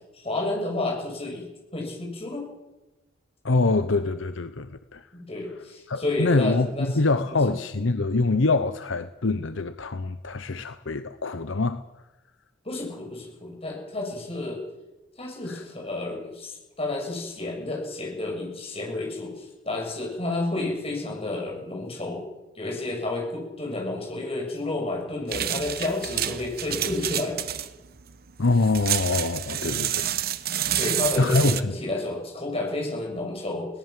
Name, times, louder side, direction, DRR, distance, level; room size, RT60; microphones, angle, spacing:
voice 1, 0.1-1.5 1.7-2.5 5.1-7.0 7.3-7.6 12.6-14.6 15.2-22.2 22.6-27.4 29.5-29.9 30.7-33.7, left 2 dB, 30° left, 0 dB, 7.0 m, -31 dB
voice 2, 3.4-5.0 5.9-11.8 15.5-15.6 28.4-30.1 31.2-31.8, left 3 dB, 70° left, 11 dB, 0.8 m, -24 dB
sound 1, 25.3-31.6, right 10 dB, 50° right, 0.9 m, -29 dB
21.5 x 18.5 x 7.5 m, 1.0 s
head